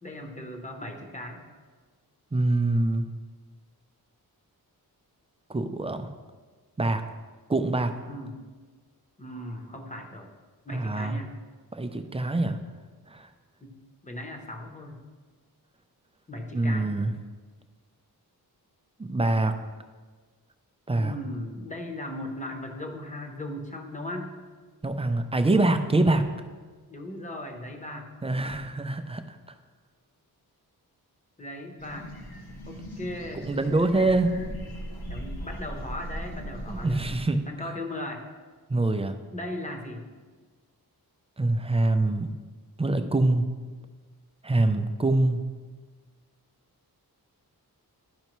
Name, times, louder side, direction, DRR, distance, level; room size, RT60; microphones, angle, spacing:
voice 1, 0.0-1.4 8.1-8.4 9.2-10.3 10.6-11.3 13.6-13.7 14.0-15.0 16.3-16.9 21.0-24.3 26.9-28.1 31.4-32.1 32.7-33.5 35.1-37.1 37.5-38.2 39.3-40.0, left 1 dB, 20° left, 3 dB, 0.9 m, -37 dB
voice 2, 2.3-3.0 5.5-6.1 6.8-7.0 7.5-7.9 10.7-11.2 11.7-12.6 13.1-13.3 16.5-17.1 19.0-19.5 20.9-21.1 24.8-26.2 28.2-29.2 33.4-34.3 36.7-37.4 38.7-39.2 41.4-42.3 42.8-43.4 44.4-45.4, right 2 dB, 15° right, 7 dB, 0.4 m, -24 dB
sound 1, 31.8-37.2, equal, 70° left, 1.7 m, -38 dB
12.0 x 5.4 x 3.0 m, 1.5 s
wide cardioid pair, 155°, 38 cm